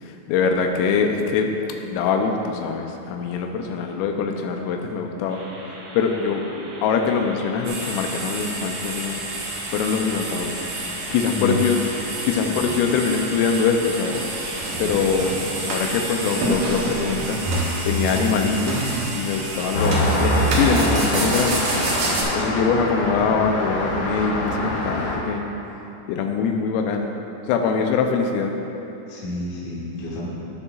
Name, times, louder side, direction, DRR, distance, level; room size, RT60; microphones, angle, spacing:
voice 1, 0.3-1.5 1.8-5.4 5.9-6.4 6.8-9.2 9.7-10.6 11.1-11.8 12.2-14.2 14.8-15.4 15.7-17.4 17.9-21.7 22.3-25.5 26.1-27.1 27.5-28.5, left 5 dB, 90° left, 3 dB, 3.3 m, -23 dB
sound 1, 5.3-17.9, right 1 dB, 65° right, 2.9 m, -39 dB
sound 2, 7.6-22.2, right 2 dB, 80° right, 1.6 m, -28 dB
voice 2, 11.4-11.8 12.3-12.7 29.1-30.3, left 1 dB, 50° left, -8 dB, 2.6 m, -29 dB
Traffic noise roadway noise, 19.7-25.2, equal, 70° left, 1.9 m, -24 dB
17.0 x 6.8 x 2.4 m, 3.0 s
omnidirectional pair, 5.7 m